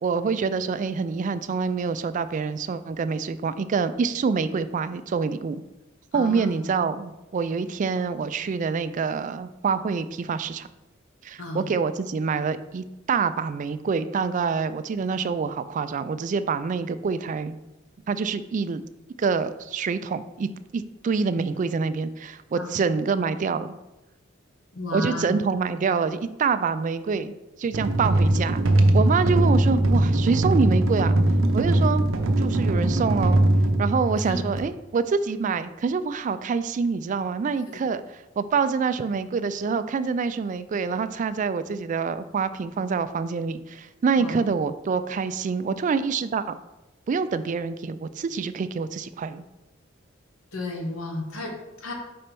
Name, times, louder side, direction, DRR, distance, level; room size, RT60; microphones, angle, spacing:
voice 1, 0.0-5.6 6.1-10.7 11.2-17.6 18.1-18.8 19.2-23.8 24.9-27.3 27.6-28.6 28.9-31.1 31.5-32.0 32.4-33.4 33.8-46.6 47.1-49.4, right 5 dB, 40° right, 12 dB, 0.3 m, -26 dB
voice 2, 6.1-6.7 11.4-11.6 21.6-21.7 22.6-22.8 24.7-25.4 34.3-34.4 44.2-44.4 50.5-51.9, left 1 dB, 90° left, 2 dB, 1.1 m, -33 dB
sound 1, 27.7-34.6, right 1 dB, 80° right, 0.6 m, -21 dB
4.4 x 4.2 x 5.2 m, 0.99 s
head